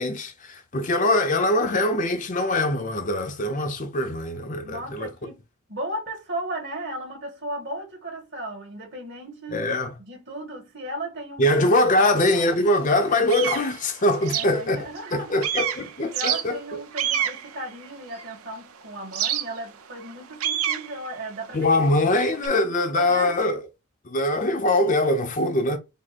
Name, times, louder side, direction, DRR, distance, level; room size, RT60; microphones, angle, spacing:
voice 1, 0.0-5.1 9.5-9.9 11.4-14.8 15.1-16.6 21.5-23.6 24.1-25.8, left 1 dB, 40° left, 0.7 m, -22 dB
voice 2, 4.6-9.7 10.0-12.7 14.3-15.5 15.8-23.4, right 1 dB, 55° right, 2.0 m, -36 dB
sound 1, 12.2-12.3 12.8-15.1 15.4-18.5 19.1-22.5, right 10 dB, 85° right, 0.7 m, -29 dB
5.1 x 2.1 x 4.2 m
head